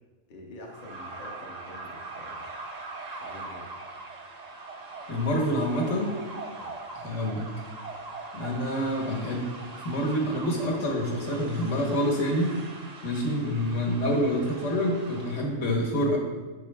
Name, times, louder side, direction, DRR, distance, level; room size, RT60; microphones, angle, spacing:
voice 1, 0.3-2.5 3.2-3.6 6.5-6.7, left 1 dB, 40° left, -1 dB, 0.9 m, -46 dB
sound 1, 0.7-15.5, right 3 dB, 45° right, 0.5 m, -42 dB
voice 2, 5.1-6.2 6.9-7.5 8.3-9.5 9.8-12.6 13.0-16.2, equal, 65° left, -1 dB, 1.4 m, -27 dB
7.1 x 4.4 x 3.3 m, 1.3 s
omnidirectional pair, 1.4 m